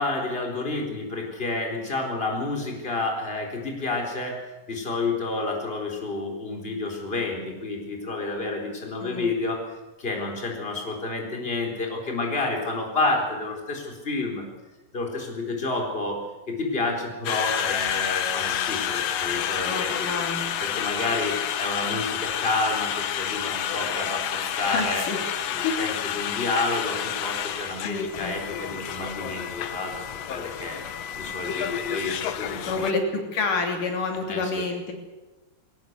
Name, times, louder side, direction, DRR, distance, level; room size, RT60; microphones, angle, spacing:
voice 1, 0.0-4.4 4.7-9.6 10.0-14.5 14.9-16.2 16.5-20.1 20.6-25.1 25.5-30.8 31.2-32.9 34.3-34.6, left 3 dB, 15° left, 1 dB, 4.2 m, -29 dB
voice 2, 9.0-9.4 19.7-20.4 24.6-25.2 25.6-25.8 27.9-28.4 32.6-34.9, left 4 dB, 80° left, 2 dB, 4.6 m, -28 dB
Conversation, 17.3-32.9, left 10 dB, 65° left, 1.9 m, -30 dB
21.0 x 19.0 x 8.1 m, 1.1 s
omnidirectional pair, 3.6 m